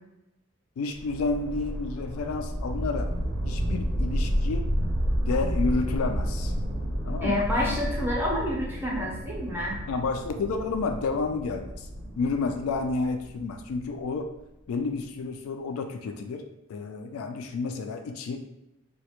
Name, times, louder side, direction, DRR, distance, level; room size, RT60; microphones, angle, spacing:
voice 1, 0.8-3.1 3.4-4.7 5.3-6.5 7.0-7.8 9.9-11.9 12.2-14.3 14.7-16.4 16.7-18.4, left 4 dB, 80° left, 6 dB, 0.3 m, -30 dB
sound 1, 0.9-14.0, equal, 75° right, 0.5 m, -30 dB
voice 2, 7.2-9.8, left 1 dB, 10° right, -4 dB, 0.5 m, -28 dB
2.2 x 2.1 x 2.8 m, 0.90 s
head